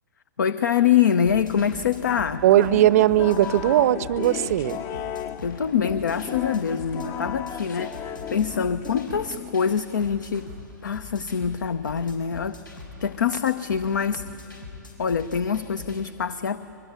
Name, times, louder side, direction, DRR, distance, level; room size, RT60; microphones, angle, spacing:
voice 1, 0.4-2.4 5.4-8.1 8.3-10.5 10.8-12.6 13.0-14.2 15.0-16.7, left 7 dB, 70° left, 13 dB, 0.7 m, -24 dB
sound 1, 1.2-16.0, left 4 dB, 90° left, 5.9 m, -42 dB
voice 2, 2.4-4.8, right 12 dB, 50° right, 18 dB, 0.6 m, -19 dB
sound 2, 2.5-9.9, left 9 dB, 30° left, 0.7 m, -35 dB
23.5 x 21.0 x 9.0 m, 2.9 s
figure-of-eight pair, 110°, 11 cm